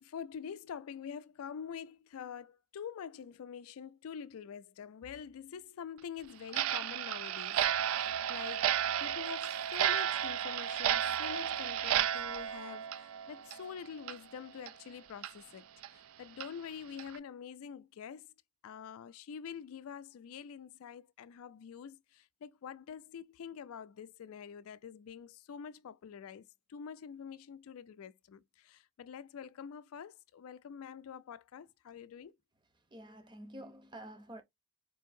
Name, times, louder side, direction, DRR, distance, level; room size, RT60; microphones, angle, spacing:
voice 1, 0.0-8.7 9.0-15.7 15.9-18.3 18.6-32.3, left 7 dB, 85° left, 0.4 m, -46 dB
Clock, 6.5-13.7 14.0-14.2 14.7-14.8 15.2-15.3 15.8-15.9 16.4-16.5 17.0-17.2, right 10 dB, 80° right, 0.3 m, -33 dB
voice 2, 32.9-34.4, right 1 dB, 20° right, 0.6 m, -48 dB
4.4 x 2.7 x 2.6 m
head